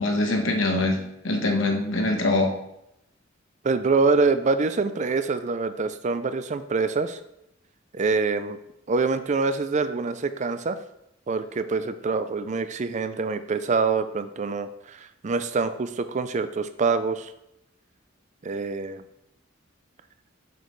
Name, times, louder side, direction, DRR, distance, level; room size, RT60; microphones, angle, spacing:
voice 1, 0.0-2.5, left 2 dB, 70° left, 3 dB, 1.1 m, -24 dB
voice 2, 3.6-7.2 7.9-8.6 8.9-10.8 11.3-17.3 18.4-19.0, right 4 dB, 35° right, 11 dB, 0.4 m, -25 dB
6.7 x 6.4 x 3.2 m, 0.82 s
head